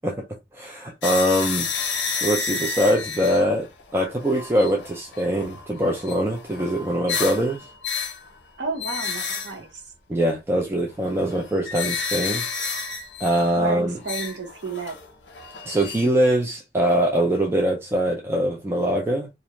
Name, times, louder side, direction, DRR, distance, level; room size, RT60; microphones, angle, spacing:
voice 1, 0.5-3.7 3.9-7.7 10.1-12.5 13.2-14.0 15.6-19.3, equal, 15° right, 0.4 m, -23 dB
sound 1, 1.0-8.4 8.8-9.6 11.0-13.6 14.0-16.3, left 5 dB, 80° left, 0.6 m, -31 dB
voice 2, 8.6-9.8 13.5-15.0, right 4 dB, 80° right, 0.8 m, -31 dB
2.5 x 2.0 x 2.9 m
head